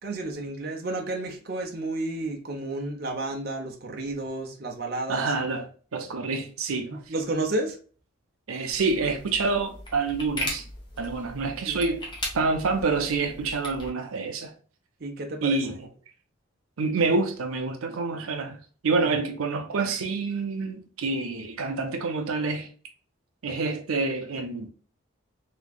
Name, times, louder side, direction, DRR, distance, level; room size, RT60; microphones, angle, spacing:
voice 1, 0.0-5.3 6.9-7.8 11.7-11.8 15.0-15.6, right 2 dB, 45° right, 0.7 m, -31 dB
voice 2, 5.1-7.0 8.5-10.7 11.0-12.0 12.3-14.5 15.4-15.9 16.8-18.6 18.8-22.7 23.4-24.7, right 3 dB, 90° right, 0.6 m, -27 dB
sound 1, 8.7-13.9, left 1 dB, 20° left, 0.9 m, -38 dB
3.4 x 3.1 x 2.3 m
head